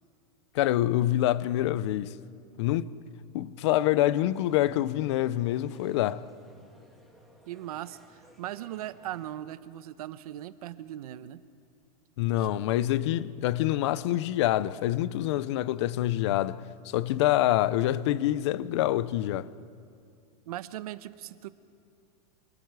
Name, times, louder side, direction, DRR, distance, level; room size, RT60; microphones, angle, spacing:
voice 1, 0.5-2.1 2.6-2.9 3.3-6.3 12.2-19.5, left 14 dB, 45° left, 0.6 m, -26 dB
sound 1, 4.3-9.4, equal, ahead, 2.4 m, -59 dB
voice 2, 7.5-11.4 12.4-12.5 20.5-21.5, right 13 dB, 65° right, 0.9 m, -39 dB
28.0 x 27.0 x 4.8 m
supercardioid pair, 175°, 21 cm